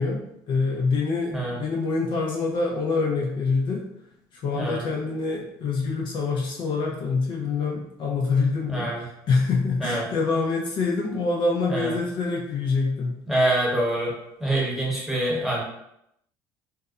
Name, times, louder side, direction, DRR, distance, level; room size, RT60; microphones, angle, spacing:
voice 1, 0.0-3.9 4.3-13.2, left 4 dB, 50° left, -1 dB, 0.5 m, -26 dB
voice 2, 13.3-14.1 14.4-15.6, right 1 dB, 5° right, -5 dB, 1.0 m, -25 dB
2.6 x 2.1 x 2.3 m, 0.77 s
supercardioid pair, 90°, 10 cm